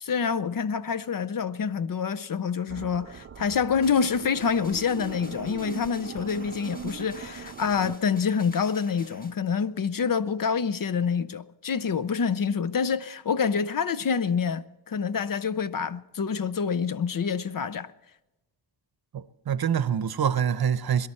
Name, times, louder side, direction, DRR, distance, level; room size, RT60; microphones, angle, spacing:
voice 1, 0.0-17.9, left 6 dB, 50° left, 0.6 m, -27 dB
sound 1, 2.7-8.0, right 7 dB, 30° right, 0.4 m, -40 dB
sound 2, 3.8-9.3, left 1 dB, 20° left, 1.4 m, -50 dB
voice 2, 19.1-21.1, right 8 dB, 55° right, 0.8 m, -25 dB
22.5 x 12.0 x 4.3 m
wide cardioid pair, 95°, 44 cm